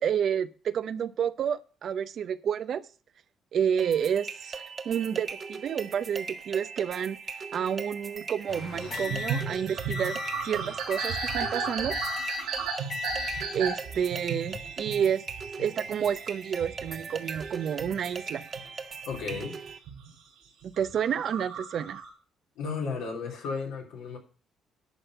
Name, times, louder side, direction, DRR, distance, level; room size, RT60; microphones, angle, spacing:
voice 1, 0.0-2.8 3.5-7.2 7.5-12.0 13.5-15.2 15.6-18.4 20.6-22.0, right 8 dB, 60° right, 13 dB, 0.7 m, -30 dB
sound 1, 3.8-19.8, right 5 dB, 40° right, 1.1 m, -40 dB
sound 2, 8.5-10.5 10.9-11.5 11.9-12.5 12.9-13.5 14.3-14.6, left 5 dB, 60° left, 1.1 m, -36 dB
sound 3, 8.8-18.7 19.1-20.1 20.6-22.1, right 6 dB, 85° right, 3.7 m, -35 dB
voice 2, 19.0-19.6 22.5-24.2, left 5 dB, 80° left, 0 dB, 3.2 m, -34 dB
11.5 x 4.3 x 7.9 m, 0.38 s
supercardioid pair, 60°, 0 cm